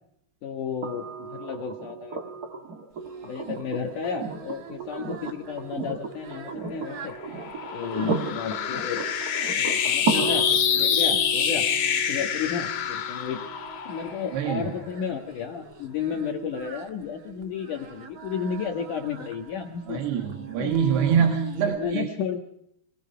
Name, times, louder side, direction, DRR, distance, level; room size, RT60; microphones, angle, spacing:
voice 1, 0.4-2.2 3.2-7.1 7.7-9.0 9.5-11.6 12.1-13.4 13.8-20.0 20.6-21.2 21.8-22.4, left 7 dB, 60° left, 3 dB, 2.5 m, -32 dB
sound 1, 0.8-14.8 16.5-16.6, right 4 dB, 90° right, 0.8 m, -34 dB
Singing, 3.0-21.8, right 10 dB, 55° right, 2.0 m, -43 dB
sound 2, 6.5-15.1, left 8 dB, 85° left, 4.2 m, -27 dB
voice 2, 14.3-14.7 19.9-22.1, right 7 dB, 75° right, 4 dB, 3.6 m, -25 dB
24.0 x 19.5 x 5.6 m, 0.75 s
omnidirectional pair, 4.8 m